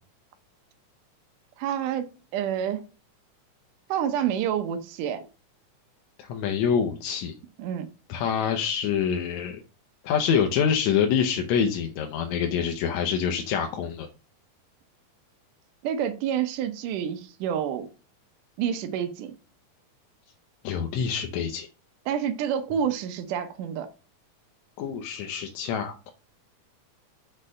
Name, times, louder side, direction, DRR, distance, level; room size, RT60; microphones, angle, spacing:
voice 1, 1.6-2.9 3.9-5.3 7.6-7.9 15.8-17.9 18.6-19.3 22.1-23.9, right 9 dB, 85° right, 8 dB, 2.4 m, -28 dB
voice 2, 6.2-7.3 8.1-9.6 10.0-14.1 20.6-21.7 24.8-26.1, left 7 dB, 70° left, 4 dB, 2.0 m, -26 dB
6.5 x 5.4 x 6.3 m, 0.34 s
omnidirectional pair, 3.6 m